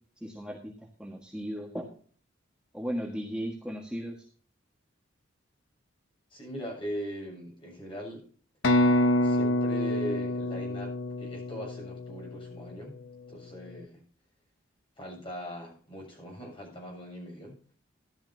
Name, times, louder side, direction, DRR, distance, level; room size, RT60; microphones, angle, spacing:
voice 1, 0.2-0.7 1.0-1.9 2.7-4.2, equal, 5° right, -1 dB, 1.6 m, -36 dB
voice 2, 6.3-8.3 9.2-13.0 13.3-14.0 15.0-17.6, equal, 25° left, -1 dB, 7.1 m, -40 dB
sound 1, 8.6-12.4, left 1 dB, 85° left, 1.1 m, -26 dB
14.5 x 11.5 x 2.8 m, 0.43 s
head